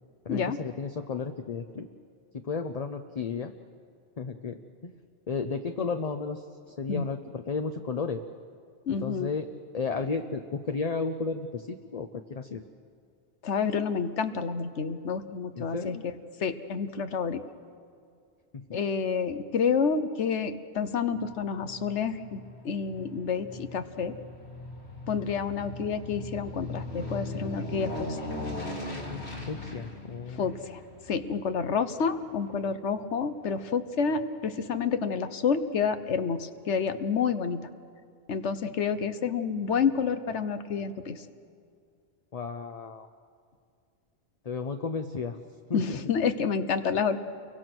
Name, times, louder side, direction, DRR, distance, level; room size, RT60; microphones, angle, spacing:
voice 1, 0.2-1.9 2.3-3.5 4.2-4.6 4.8-4.9 5.3-8.2 9.0-9.5 9.7-12.6 15.5-16.0 18.5-18.6 29.5-30.5 42.3-43.1 44.4-45.4 45.7-46.0, left 4 dB, 40° left, 7 dB, 0.7 m, -33 dB
voice 2, 8.9-9.3 13.4-16.0 16.4-17.4 18.7-24.1 25.1-28.2 30.4-30.8 31.1-37.6 38.3-41.2 45.7-47.2, left 6 dB, 85° left, 11 dB, 1.3 m, -29 dB
Aircraft, 21.1-33.6 34.0-34.1, left 2 dB, 70° left, 3.2 m, -40 dB
29.5 x 23.5 x 6.2 m, 2.3 s
omnidirectional pair, 1.1 m